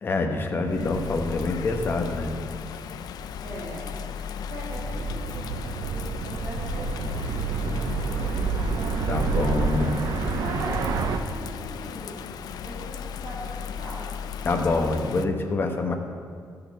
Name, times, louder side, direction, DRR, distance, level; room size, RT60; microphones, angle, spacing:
voice 1, 0.0-2.3 9.1-9.9 14.4-15.9, left 3 dB, 35° left, 3 dB, 1.1 m, -26 dB
Bird vocalization bird call bird song / Rain, 0.6-15.2, left 7 dB, 80° left, 0.5 m, -36 dB
voice 2, 3.4-4.0 4.2-9.3 9.7-12.3 12.6-14.1, right 1 dB, 30° right, -8 dB, 2.4 m, -40 dB
sound 1, 4.7-11.2, right 5 dB, 70° right, 0.7 m, -28 dB
12.5 x 6.8 x 6.9 m, 2.1 s
wide cardioid pair, 175°, 7 cm